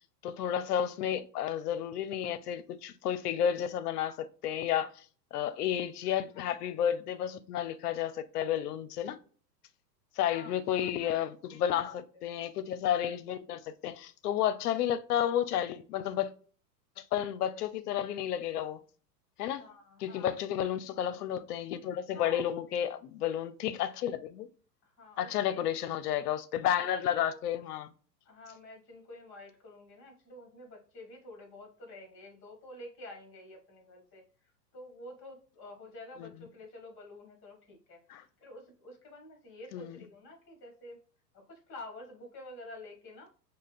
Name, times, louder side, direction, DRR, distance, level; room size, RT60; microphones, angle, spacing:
voice 1, 0.2-4.9 5.3-9.2 10.2-16.3 17.0-18.8 19.4-19.7 20.0-24.5 25.2-27.9 36.2-36.3 38.1-38.2 39.7-40.0, left 10 dB, 65° left, 0.6 m, -32 dB
voice 2, 19.5-20.3 22.1-22.8 24.8-25.7 27.2-27.4 28.2-34.2 34.7-41.0 41.3-43.3, left 1 dB, 25° left, 1.5 m, -49 dB
5.0 x 2.2 x 2.4 m
hypercardioid pair, 110°, 50 cm